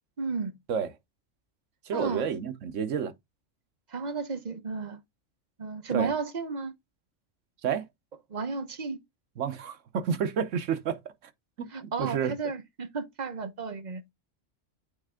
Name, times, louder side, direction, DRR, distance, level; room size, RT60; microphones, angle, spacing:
voice 1, 0.2-0.5 1.9-2.3 3.9-5.0 5.6-6.7 8.3-9.0 11.7-14.1, right 4 dB, 40° right, 0.9 m, -33 dB
voice 2, 1.9-3.1 5.9-6.1 7.6-7.9 9.4-11.0 11.6-11.7 12.0-12.3, right 7 dB, 75° right, 1.2 m, -29 dB
8.5 x 3.3 x 3.6 m
omnidirectional pair, 1.3 m